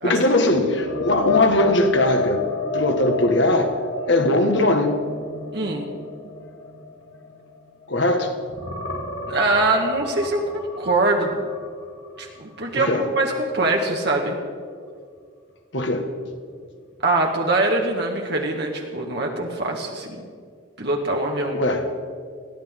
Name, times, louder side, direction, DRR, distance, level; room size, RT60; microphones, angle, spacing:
voice 1, 0.0-2.4 2.7-3.8 4.1-5.0 7.9-8.3 12.8-13.1 15.7-16.1 21.5-21.9, left 1 dB, 65° left, 5 dB, 1.8 m, -20 dB
sound 1, 0.7-8.1 8.4-12.3 12.7-12.9 16.3-16.4, left 4 dB, 80° left, 2.0 m, -31 dB
voice 2, 5.5-5.9 9.3-11.4 12.2-14.4 17.0-20.2 20.8-21.6, right 2 dB, 55° right, 0 dB, 1.7 m, -23 dB
22.0 x 15.5 x 3.7 m, 2.1 s
head